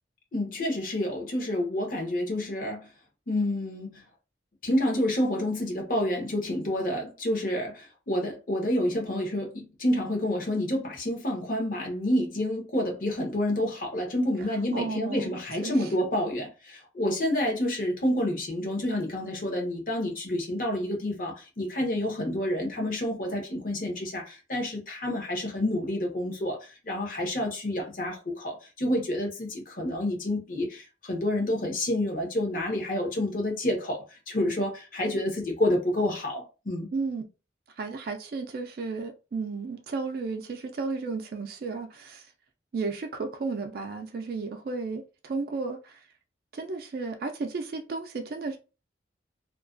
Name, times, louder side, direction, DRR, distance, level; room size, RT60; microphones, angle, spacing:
voice 1, 0.3-2.9 3.3-4.0 4.6-36.9, left 1 dB, 45° left, 0.8 m, -29 dB
voice 2, 14.7-15.9 36.9-37.2 37.8-42.3 42.7-46.0 46.5-48.6, right 4 dB, 55° right, 0.3 m, -33 dB
2.3 x 2.2 x 2.4 m
head